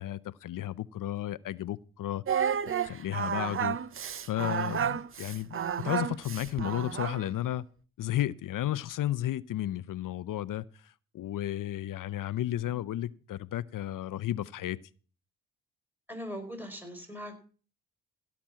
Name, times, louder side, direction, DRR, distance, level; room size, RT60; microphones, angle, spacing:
voice 1, 0.0-2.2 2.8-3.8 4.3-7.6 8.0-10.6 11.1-14.8, left 13 dB, 60° left, 0.7 m, -33 dB
Singing, 2.3-7.3, right 8 dB, 35° right, 0.7 m, -31 dB
voice 2, 16.1-17.4, equal, 5° right, 4.7 m, -40 dB
16.5 x 6.1 x 7.4 m
supercardioid pair, 65°, 36 cm